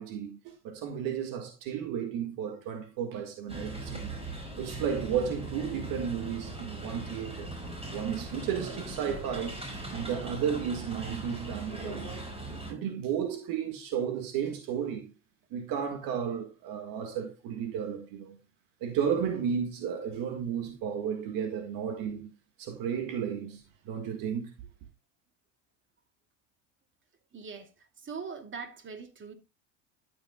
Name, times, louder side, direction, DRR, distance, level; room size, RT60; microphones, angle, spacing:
voice 1, 0.0-4.1 4.6-7.5 7.9-9.6 9.9-12.2 12.7-15.1 15.5-18.4 18.8-22.3 22.6-24.5, right 8 dB, 60° right, 1.8 m, -33 dB
sound 1, 3.5-12.7, right 2 dB, 15° right, 5.7 m, -40 dB
voice 2, 27.3-27.7 28.0-29.3, right 5 dB, 30° right, 2.6 m, -41 dB
13.0 x 8.9 x 2.3 m
hypercardioid pair, 85°, 37 cm